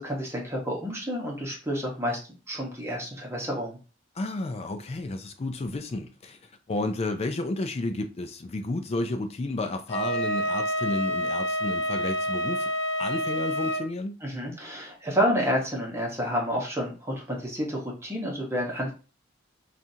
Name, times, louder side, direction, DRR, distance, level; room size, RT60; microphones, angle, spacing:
voice 1, 0.0-2.2 2.5-3.8 14.2-18.9, equal, 15° right, 1.0 m, -29 dB
voice 2, 4.1-12.7 13.0-14.1, left 2 dB, 30° left, 0.4 m, -31 dB
Wind instrument woodwind instrument, 9.9-13.9, equal, 65° left, 0.8 m, -28 dB
5.7 x 2.4 x 2.7 m
head